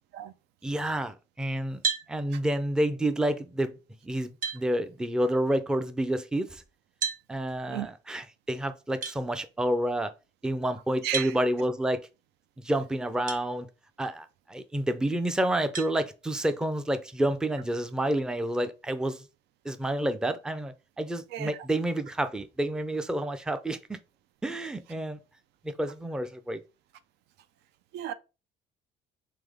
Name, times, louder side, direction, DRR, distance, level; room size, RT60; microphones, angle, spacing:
voice 1, 0.6-1.8 2.1-3.8 4.0-6.6 7.3-10.1 10.4-12.1 12.6-13.7 14.0-19.2 19.6-24.0 24.4-25.2 25.6-26.6, right 1 dB, 5° right, 0.4 m, -29 dB
sound 1, 1.8-2.1 3.8-3.9 4.4-4.6 7.0-7.2 9.0-9.2 11.1-11.4 13.3-13.4 14.1-14.2 15.7-15.9, right 6 dB, 55° right, 1.0 m, -30 dB
voice 2, 11.0-11.3 21.3-21.5 27.9-28.1, right 12 dB, 80° right, 0.4 m, -34 dB
3.5 x 3.4 x 3.4 m
cardioid pair, 110°, 17 cm